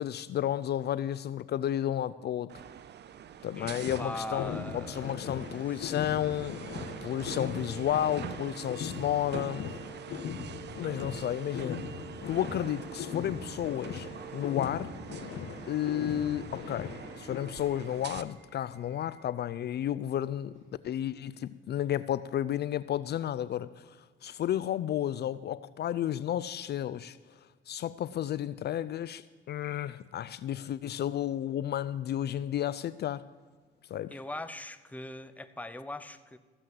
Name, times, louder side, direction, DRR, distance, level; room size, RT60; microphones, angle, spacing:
voice 1, 0.0-2.5 3.4-9.8 10.8-14.1 14.3-14.9 15.7-20.5 20.8-27.2 27.7-33.2 33.9-34.2, left 11 dB, 55° left, 17 dB, 0.4 m, -32 dB
sound 1, 2.5-18.2, right 9 dB, 60° right, 0.7 m, -44 dB
sound 2, 3.6-17.4, left 7 dB, 75° left, 1.4 m, -40 dB
voice 2, 3.6-5.3 5.7-6.0 34.1-36.4, left 1 dB, 5° left, 12 dB, 0.7 m, -41 dB
Subway metro underground / Alarm, 14.4-21.5, right 1 dB, 35° right, 5.2 m, -58 dB
15.0 x 7.7 x 7.6 m, 1.5 s
cardioid pair, 90°, 20 cm